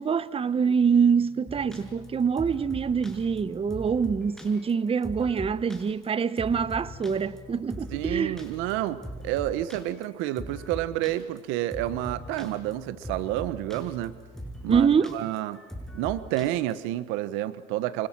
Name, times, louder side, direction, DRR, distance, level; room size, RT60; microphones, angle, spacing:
voice 1, 0.0-8.4 14.7-15.2, right 6 dB, 30° right, 1.0 m, -25 dB
sound 1, 1.5-16.9, equal, ahead, 6.4 m, -41 dB
voice 2, 7.9-14.1 14.6-14.9 15.1-15.6 15.9-18.1, right 14 dB, 85° right, 1.3 m, -29 dB
29.0 x 27.5 x 6.2 m
supercardioid pair, 95°, 20 cm